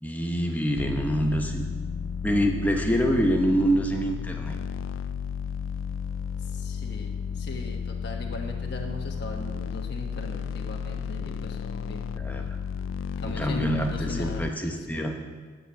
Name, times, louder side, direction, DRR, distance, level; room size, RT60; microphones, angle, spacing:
voice 1, 0.0-1.7 2.2-4.6 12.1-12.6 13.2-15.2, equal, 10° left, 2 dB, 0.8 m, -26 dB
sound 1, 0.8-14.5, left 7 dB, 70° left, 0.3 m, -33 dB
voice 2, 6.4-12.1 13.2-15.1, left 1 dB, 50° left, 1 dB, 1.4 m, -39 dB
9.9 x 8.0 x 8.8 m, 1.5 s
head